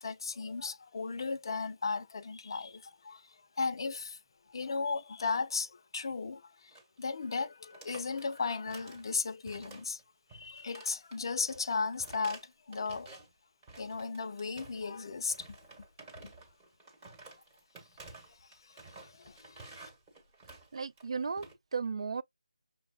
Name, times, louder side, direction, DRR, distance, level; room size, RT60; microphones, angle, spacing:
voice 1, 0.0-4.2 4.5-10.0 10.3-13.3 13.8-15.6 16.2-16.3 18.3-19.9, left 4 dB, 40° left, 0.5 m, -36 dB
sound 1, 6.7-7.0 7.2-7.4 7.6-9.1 9.5-10.0 10.3-13.3 13.6-14.9 15.3-21.5, right 3 dB, 15° right, 1.2 m, -52 dB
voice 2, 20.7-22.2, right 5 dB, 50° right, 0.3 m, -35 dB
6.4 x 2.2 x 2.3 m
figure-of-eight pair, 165°, 4 cm